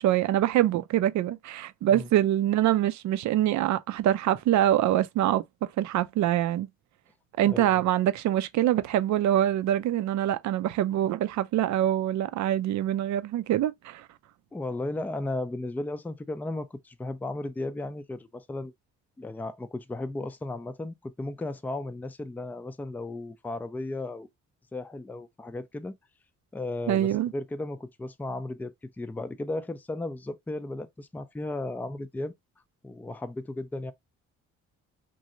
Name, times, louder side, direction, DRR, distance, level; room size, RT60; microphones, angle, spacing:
voice 1, 0.0-5.4 5.8-6.7 7.4-14.0 26.9-27.3, right 12 dB, 70° right, 0.5 m, -24 dB
voice 2, 7.5-7.8 14.5-18.7 19.2-24.3 24.7-26.0 26.5-32.3 32.8-33.9, left 2 dB, 5° left, 0.4 m, -35 dB
3.0 x 2.7 x 2.5 m
cardioid pair, 90°, 30 cm